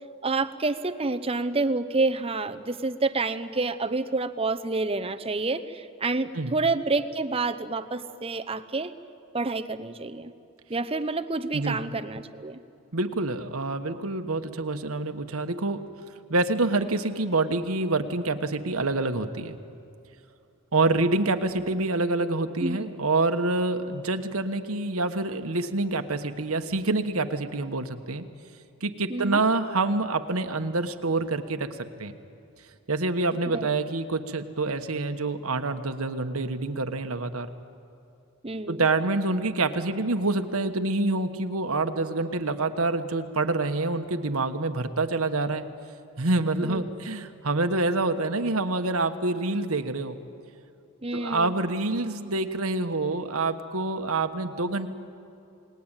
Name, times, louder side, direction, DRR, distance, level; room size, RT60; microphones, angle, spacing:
voice 1, 0.2-8.9 9.3-10.3 10.7-12.6 22.6-22.9 29.1-29.4 33.5-33.7 38.4-38.9 46.6-46.8 51.0-51.5, right 3 dB, 25° right, 9 dB, 0.8 m, -28 dB
voice 2, 12.9-15.8 16.3-19.6 20.7-28.2 28.8-31.7 32.0-32.2 32.9-37.5 38.7-45.7 46.2-50.2 51.1-54.9, right 2 dB, 75° right, 7 dB, 1.3 m, -27 dB
29.0 x 20.0 x 9.0 m, 2.7 s
head